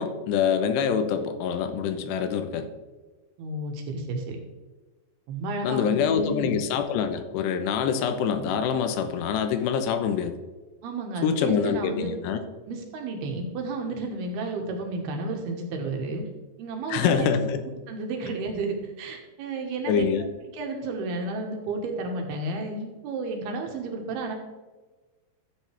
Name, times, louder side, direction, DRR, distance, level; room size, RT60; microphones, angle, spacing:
voice 1, 0.0-2.7 5.6-10.3 11.2-12.4 16.9-17.6 19.9-20.2, left 7 dB, 80° left, 8 dB, 2.9 m, -25 dB
voice 2, 3.4-4.4 5.3-6.5 10.8-12.1 12.7-16.2 16.6-17.5 17.9-20.3 20.5-24.4, right 2 dB, 70° right, 2 dB, 3.1 m, -32 dB
13.5 x 7.6 x 3.3 m, 1.3 s
omnidirectional pair, 4.9 m